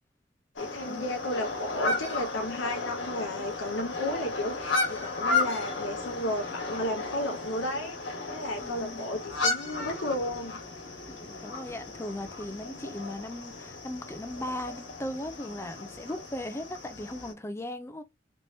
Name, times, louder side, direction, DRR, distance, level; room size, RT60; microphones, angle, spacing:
voice 1, 0.6-10.6, left 1 dB, 85° left, 0.7 m, -33 dB
sound 1, 0.6-17.3, left 3 dB, 70° left, 1.4 m, -34 dB
voice 2, 8.6-9.1 11.1-18.0, left 1 dB, 15° left, 0.4 m, -38 dB
3.4 x 2.9 x 2.7 m
head